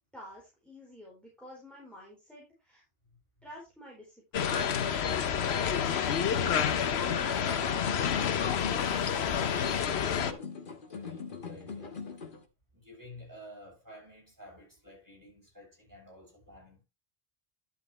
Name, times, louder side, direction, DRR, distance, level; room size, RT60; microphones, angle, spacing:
voice 1, 0.1-2.8 3.4-4.6, left 1 dB, ahead, 4.1 m, -50 dB
sound 1, 4.3-10.3, left 8 dB, 80° left, 1.1 m, -29 dB
sound 2, 5.9-12.4, left 5 dB, 50° left, 1.5 m, -41 dB
voice 2, 6.3-10.5 10.9-12.0 12.7-16.8, left 1 dB, 15° right, 7.1 m, -52 dB
11.5 x 7.5 x 3.2 m
omnidirectional pair, 1.1 m